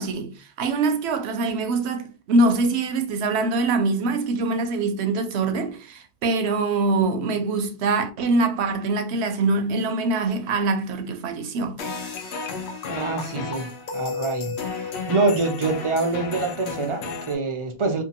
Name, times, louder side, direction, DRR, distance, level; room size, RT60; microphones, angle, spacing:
voice 1, 0.0-11.8, right 3 dB, 70° right, 0.8 m, -24 dB
sound 1, 11.8-17.3, left 4 dB, 70° left, 0.9 m, -32 dB
voice 2, 12.9-18.0, right 3 dB, 50° right, 0.3 m, -25 dB
2.6 x 2.5 x 2.7 m
omnidirectional pair, 1.2 m